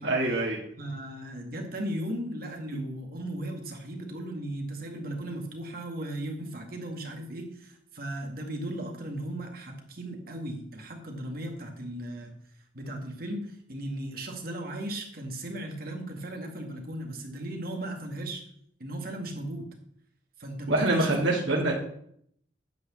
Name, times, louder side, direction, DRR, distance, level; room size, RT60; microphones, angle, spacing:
voice 1, 0.0-0.6 2.7-2.8 20.7-21.7, right 2 dB, 75° right, -2 dB, 2.0 m, -25 dB
voice 2, 0.8-12.4 12.7-18.4 18.8-19.7 20.4-21.2 21.5-21.7, right 1 dB, 50° right, 2 dB, 2.2 m, -36 dB
9.5 x 6.4 x 7.3 m, 0.69 s
head